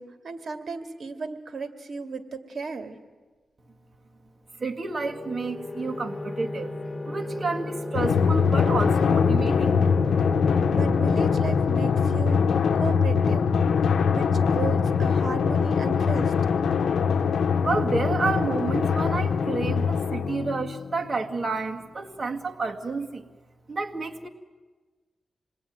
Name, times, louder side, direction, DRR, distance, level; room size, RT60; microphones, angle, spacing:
voice 1, 0.0-3.0 10.7-13.5 14.1-16.3, right 4 dB, 70° right, 7 dB, 2.3 m, -35 dB
voice 2, 4.6-6.7 7.0-9.8 10.1-10.2 17.6-23.3 23.7-24.3, right 3 dB, 40° right, 2 dB, 1.8 m, -30 dB
sound 1, 4.9-11.5, left 2 dB, 20° left, 4.7 m, -34 dB
Drum, 7.9-21.0, left 6 dB, 85° left, 0.8 m, -23 dB
27.5 x 21.0 x 9.4 m, 1.3 s
cardioid pair, 70°, 0 cm